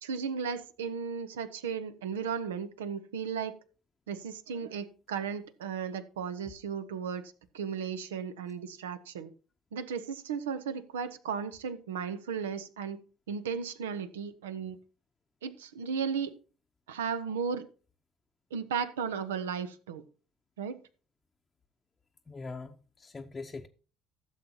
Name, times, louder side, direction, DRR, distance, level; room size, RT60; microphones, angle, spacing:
voice 1, 0.0-3.5 4.1-9.3 9.7-13.0 13.3-14.8 15.4-16.3 16.9-17.7 18.5-20.0 20.6-20.8, right 6 dB, 80° right, 0.8 m, -35 dB
voice 2, 22.3-23.7, left 3 dB, 25° left, 0.8 m, -42 dB
15.0 x 7.3 x 2.9 m
hypercardioid pair, 60°, 0 cm